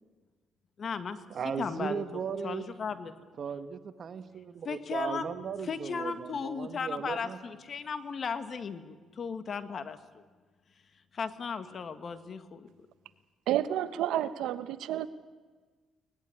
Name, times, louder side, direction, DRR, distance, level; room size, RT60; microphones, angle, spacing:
voice 1, 0.8-1.2 1.6-3.2 4.6-5.3 5.6-10.2 11.1-12.7, left 5 dB, 50° left, 10 dB, 1.7 m, -36 dB
voice 2, 1.3-2.7 3.4-7.4, right 6 dB, 55° right, 10 dB, 1.5 m, -37 dB
voice 3, 13.5-15.1, right 12 dB, 85° right, 12 dB, 1.2 m, -30 dB
23.0 x 19.5 x 9.8 m, 1.4 s
cardioid pair, 90°, 0 cm